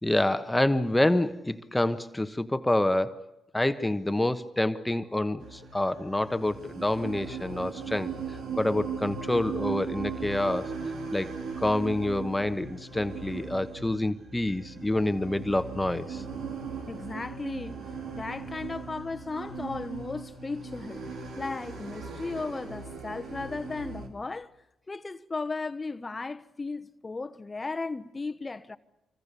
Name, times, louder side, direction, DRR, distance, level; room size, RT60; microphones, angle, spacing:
voice 1, 0.0-10.7 11.1-11.3 11.6-16.2, left 1 dB, 10° left, 1.2 m, -27 dB
sound 1, 5.4-24.1, right 5 dB, 70° right, 3.4 m, -38 dB
voice 2, 16.9-17.8 18.1-21.1 21.4-24.5 24.9-28.8, left 3 dB, 30° left, 1.1 m, -35 dB
26.0 x 25.0 x 7.0 m
supercardioid pair, 55°, 0 cm